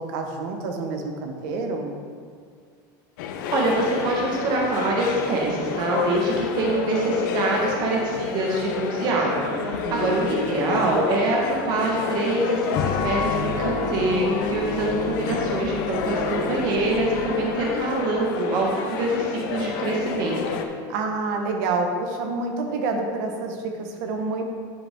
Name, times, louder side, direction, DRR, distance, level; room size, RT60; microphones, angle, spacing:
voice 1, 0.0-2.0 9.6-10.4 20.9-24.4, right 3 dB, 65° right, 3 dB, 1.1 m, -28 dB
sound 1, 3.2-20.7, left 7 dB, 85° left, 0.7 m, -30 dB
voice 2, 3.5-20.6, right 2 dB, 45° right, -2 dB, 1.4 m, -24 dB
sound 2, 12.7-17.9, left 5 dB, 40° left, 0.6 m, -30 dB
10.0 x 5.1 x 3.6 m, 2.1 s
supercardioid pair, 160°, 10 cm